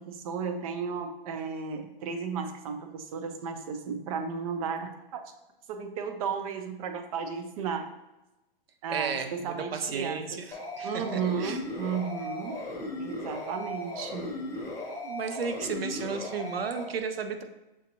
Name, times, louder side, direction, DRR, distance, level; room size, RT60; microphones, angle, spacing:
voice 1, 0.0-5.2 5.7-7.9 8.8-10.4 10.8-12.6 13.0-14.3, right 6 dB, 40° right, 7 dB, 0.5 m, -34 dB
voice 2, 8.9-11.6 15.0-17.4, right 5 dB, 90° right, 7 dB, 0.6 m, -34 dB
sound 1, 10.5-16.8, left 1 dB, 10° left, 0.7 m, -37 dB
6.3 x 2.7 x 2.7 m, 0.98 s
hypercardioid pair, 130°, 29 cm